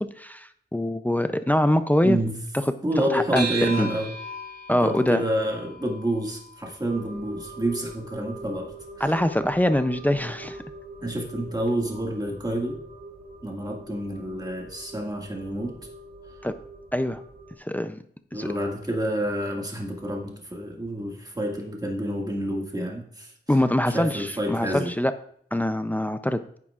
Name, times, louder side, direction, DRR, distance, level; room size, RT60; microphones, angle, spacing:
voice 1, 0.2-2.2 3.0-3.4 3.8-3.9 4.7-5.2 9.0-10.6 16.4-16.5 16.9-17.2 17.6-18.0 18.3-18.5 23.5-25.1 25.5-26.4, left 1 dB, 10° left, 9 dB, 0.6 m, -23 dB
voice 2, 2.0-2.4 2.8-4.1 4.8-9.1 11.0-12.8 13.4-15.8 18.3-23.6 23.9-24.9, right 1 dB, 20° right, 0 dB, 2.1 m, -28 dB
sound 1, 3.4-8.1, right 1 dB, 75° left, 3.8 m, -37 dB
sound 2, 6.9-17.6, right 1 dB, 60° right, 2.4 m, -43 dB
10.5 x 9.6 x 2.5 m, 0.64 s
wide cardioid pair, 80°, 18 cm